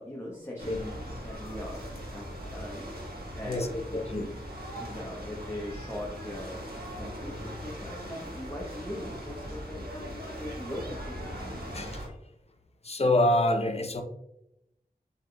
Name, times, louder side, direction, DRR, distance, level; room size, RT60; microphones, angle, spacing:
voice 1, 0.0-1.8 2.1-2.9 3.3-3.6 3.9-4.0 4.8-6.6 6.9-11.3, left 1 dB, 15° left, -4 dB, 1.0 m, -40 dB
sound 1, 0.6-12.1, equal, 70° right, 1.3 m, -40 dB
voice 2, 3.9-4.3 11.4-12.0 12.8-14.0, left 1 dB, 40° left, 5 dB, 0.6 m, -26 dB
6.4 x 3.4 x 2.3 m, 0.82 s
wide cardioid pair, 50°, 16 cm